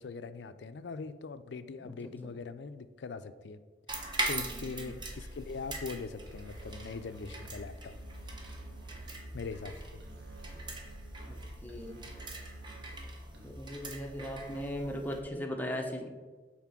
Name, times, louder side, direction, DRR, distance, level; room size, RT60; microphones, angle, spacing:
voice 1, 0.0-3.6 3.9-8.0 9.3-10.0, left 4 dB, 75° left, 12 dB, 0.4 m, -42 dB
voice 2, 1.8-2.3 4.3-4.9 11.3-12.0 13.4-16.1, equal, 10° left, 2 dB, 0.8 m, -39 dB
sound 1, 3.9-15.2, right 1 dB, 25° right, 0.9 m, -42 dB
Musical instrument, 6.2-13.8, right 1 dB, 70° right, 1.4 m, -49 dB
5.9 x 4.1 x 5.9 m, 1.4 s
head